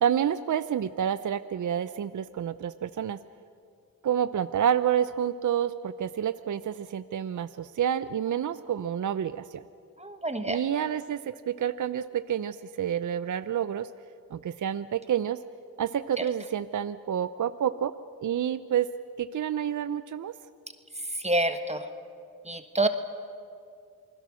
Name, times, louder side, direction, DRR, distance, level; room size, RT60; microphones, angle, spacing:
voice 1, 0.0-3.2 4.0-9.6 10.5-13.9 14.3-15.4 15.8-17.9 18.2-18.9 19.2-20.3, right 9 dB, 60° right, 13 dB, 0.6 m, -29 dB
voice 2, 10.0-10.6 16.2-16.3 21.2-21.9 22.4-22.9, right 1 dB, 20° right, 8 dB, 1.5 m, -27 dB
28.5 x 20.5 x 6.3 m, 2.4 s
cardioid pair, 70°, 35 cm